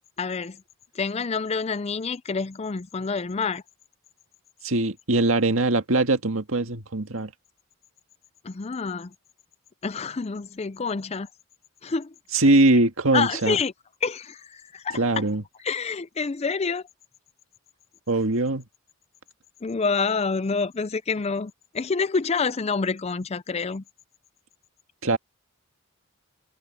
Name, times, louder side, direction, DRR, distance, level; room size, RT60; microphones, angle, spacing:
voice 1, 0.2-0.6 1.0-3.6 8.4-9.1 9.8-11.3 11.8-12.1 13.1-13.7 14.0-15.2 15.6-16.8 19.6-23.8, left 4 dB, 30° left, 0.4 m, -27 dB
voice 2, 4.6-7.3 12.3-13.6 14.9-15.4 18.1-18.7 25.0-25.2, right 2 dB, 65° right, 1.9 m, -21 dB
head